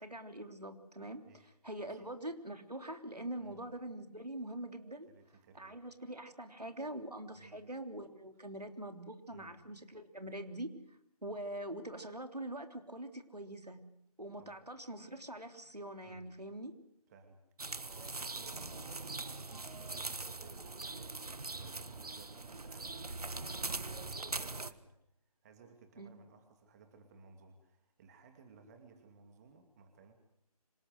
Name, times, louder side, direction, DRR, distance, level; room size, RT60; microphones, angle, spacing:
voice 1, 0.0-1.2 1.6-5.1 5.5-13.8 14.2-16.7 26.0-26.1, right 1 dB, 90° right, 7 dB, 3.4 m, -44 dB
voice 2, 5.1-5.8 7.4-7.6 9.3-9.5 14.4-14.6 16.0-16.3 17.1-25.0 25.4-30.1, right 5 dB, 25° right, 6 dB, 2.4 m, -59 dB
sound 1, 17.6-24.7, right 3 dB, 75° right, 1.5 m, -42 dB
26.5 x 19.0 x 7.9 m, 0.75 s
figure-of-eight pair, 150°, 20 cm